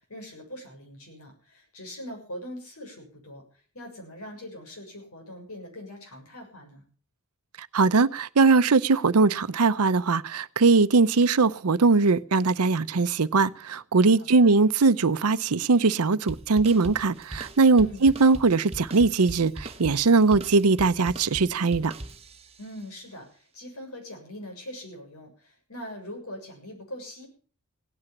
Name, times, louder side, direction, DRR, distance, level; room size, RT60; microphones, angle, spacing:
voice 1, 0.1-3.4 3.7-6.9 14.2-14.6 17.7-18.1 22.6-27.3, equal, 75° left, 7.0 m, -42 dB
voice 2, 7.6-21.9, right 4 dB, 90° right, 0.7 m, -21 dB
sound 1, 16.3-22.6, right 1 dB, 30° right, 1.3 m, -40 dB
17.5 x 9.9 x 7.2 m
head